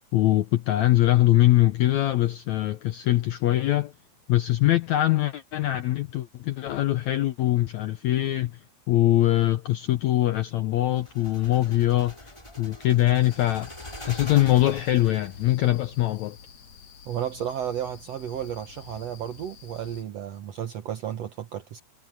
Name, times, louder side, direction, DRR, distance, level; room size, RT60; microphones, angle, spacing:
voice 1, 0.1-3.9 4.3-12.3 12.6-13.7 14.0-16.4, left 14 dB, 80° left, 1.6 m, -22 dB
sound 1, 11.0-15.5, left 1 dB, 5° left, 4.9 m, -43 dB
sound 2, 13.2-20.0, left 6 dB, 55° left, 2.2 m, -48 dB
voice 2, 17.1-21.8, right 10 dB, 70° right, 1.6 m, -33 dB
omnidirectional pair, 4.2 m